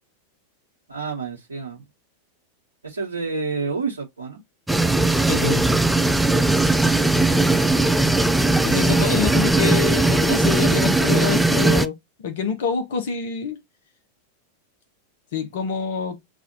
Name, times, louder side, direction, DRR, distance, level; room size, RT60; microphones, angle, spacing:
voice 1, 0.9-1.8 2.8-4.4, right 4 dB, 75° right, 1.3 m, -29 dB
sound 1, 4.7-11.9, right 2 dB, 5° right, 0.3 m, -19 dB
voice 2, 5.3-6.2 8.6-13.6 15.3-16.2, left 7 dB, 55° left, 1.2 m, -26 dB
7.2 x 2.7 x 2.7 m
figure-of-eight pair, 90°, 0 cm